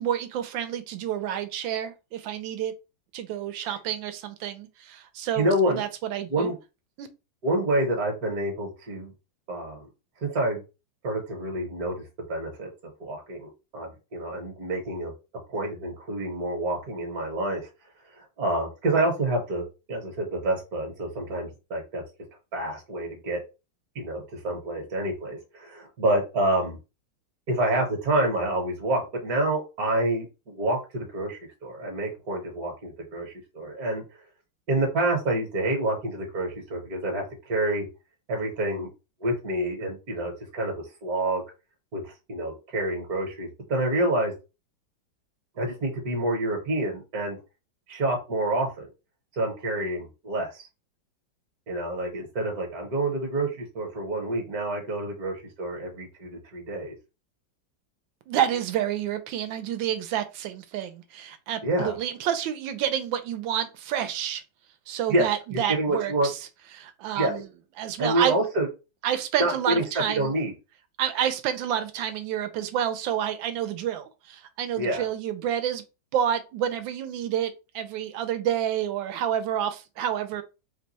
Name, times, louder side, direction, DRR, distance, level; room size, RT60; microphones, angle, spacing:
voice 1, 0.0-2.7 3.1-6.5 7.0-7.1 58.3-64.4 64.9-66.4 66.7-67.5 67.8-68.4 69.0-70.3 71.0-75.8 76.1-80.4, right 10 dB, 80° right, 1.3 m, -29 dB
voice 2, 5.4-5.8 6.3-6.6 7.4-9.1 9.5-9.9 10.2-10.6 11.0-12.0 12.3-12.7 13.0-15.1 15.5-17.6 18.1-22.0 22.5-23.4 23.9-26.8 27.5-34.0 34.7-37.9 38.3-38.9 39.2-41.4 41.9-44.3 45.6-47.4 47.9-48.9 49.4-50.7 51.7-56.9 61.6-62.0 65.1-66.3 67.1-67.4 68.0-68.7 69.4-69.8 70.1-70.5 74.8-75.0, right 1 dB, 55° right, 1.3 m, -28 dB
3.3 x 2.2 x 4.0 m
omnidirectional pair, 2.1 m